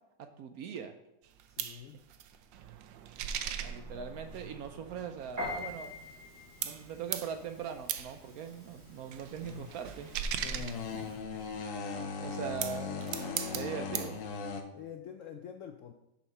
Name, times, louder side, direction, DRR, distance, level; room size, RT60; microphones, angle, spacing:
voice 1, 0.2-0.9 3.6-5.9 6.6-10.1 12.2-13.1 13.5-14.2, right 7 dB, 70° right, 7 dB, 0.9 m, -41 dB
sound 1, 1.2-6.3 6.6-11.6 12.3-14.2, right 8 dB, 90° right, 1.4 m, -40 dB
voice 2, 1.5-2.0 10.5-10.6 14.7-15.9, left 9 dB, 85° left, 6 dB, 0.6 m, -47 dB
Piano, 5.4-11.2, left 1 dB, 45° right, 2.8 m, -45 dB
sound 2, 9.4-14.6, left 5 dB, 55° left, 1.0 m, -39 dB
7.0 x 5.8 x 5.5 m, 0.90 s
omnidirectional pair, 1.9 m